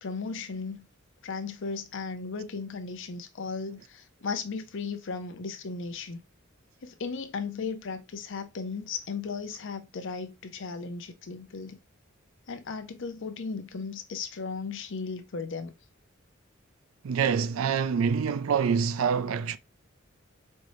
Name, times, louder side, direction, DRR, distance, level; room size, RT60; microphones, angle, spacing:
voice 1, 0.0-0.9 1.2-6.2 6.8-11.8 12.5-15.7, left 4 dB, 65° left, 0.7 m, -36 dB
voice 2, 17.0-19.6, right 6 dB, 80° right, 0.4 m, -26 dB
4.4 x 3.2 x 2.6 m
head